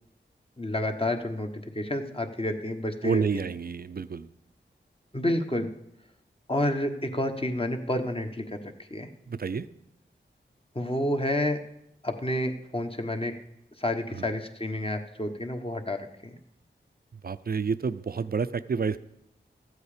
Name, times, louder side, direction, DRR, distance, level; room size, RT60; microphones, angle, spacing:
voice 1, 0.6-3.2 5.1-5.7 6.5-9.1 10.7-11.6 12.0-13.3 13.8-16.4, left 1 dB, 30° left, 5 dB, 1.3 m, -29 dB
voice 2, 3.0-4.3 9.3-9.7 14.1-14.3 17.2-19.0, right 5 dB, 50° right, 14 dB, 0.5 m, -29 dB
13.0 x 8.0 x 5.1 m, 0.80 s
wide cardioid pair, 50°, 20 cm